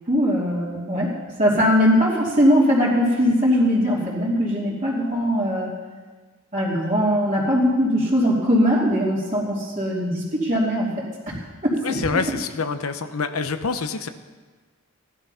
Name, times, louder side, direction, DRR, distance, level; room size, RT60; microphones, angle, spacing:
voice 1, 0.1-1.1 1.4-5.7 6.5-12.2, equal, 35° right, -7 dB, 2.9 m, -21 dB
voice 2, 11.8-14.1, left 4 dB, 90° left, 9 dB, 0.8 m, -26 dB
15.5 x 11.5 x 5.6 m, 1.4 s
head